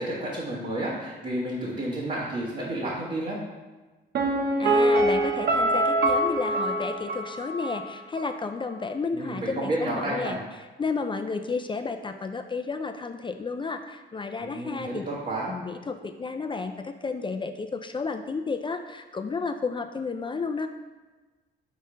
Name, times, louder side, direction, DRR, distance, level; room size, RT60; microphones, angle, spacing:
voice 1, 0.0-3.4 9.1-10.4 14.4-15.5, right 1 dB, 40° right, -6 dB, 1.5 m, -31 dB
Piano, 4.1-7.9 8.2-8.3, right 1 dB, 55° right, 0.8 m, -24 dB
voice 2, 4.6-10.4 10.8-15.0 15.5-20.7, left 4 dB, 25° left, 7 dB, 0.4 m, -32 dB
5.1 x 4.2 x 5.2 m, 1.2 s
cardioid pair, 90°, 20 cm